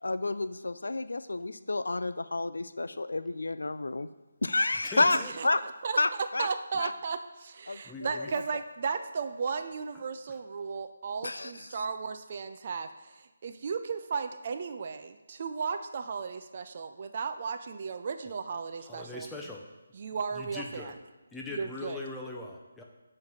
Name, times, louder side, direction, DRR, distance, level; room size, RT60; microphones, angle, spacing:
voice 1, 0.0-4.1 4.4-5.6 6.0-6.5 6.8-6.9 7.7-8.3 11.2-11.7, left 2 dB, 80° left, 13 dB, 0.3 m, -30 dB
voice 2, 4.8-5.3 7.8-8.3 18.8-19.6 20.3-21.0 21.3-22.8, left 2 dB, 5° left, -2 dB, 0.6 m, -40 dB
voice 3, 5.4-6.0 6.4-19.3 19.9-20.9 21.5-22.0, right 5 dB, 40° right, 8 dB, 0.4 m, -35 dB
7.1 x 3.2 x 5.5 m, 1.1 s
figure-of-eight pair, 160°, 0 cm